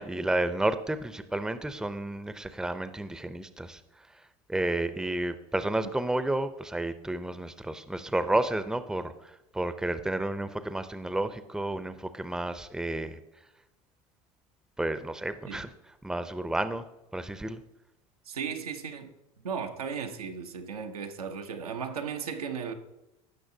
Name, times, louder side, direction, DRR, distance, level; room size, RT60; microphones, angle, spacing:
voice 1, 0.0-3.8 4.5-9.1 9.5-13.2 14.8-15.7 16.0-16.8 17.1-17.6, right 1 dB, 5° right, 0.6 m, -31 dB
voice 2, 18.3-19.1 19.4-22.7, right 6 dB, 85° right, 0.9 m, -36 dB
16.0 x 6.1 x 2.8 m
hypercardioid pair, 80°, 19 cm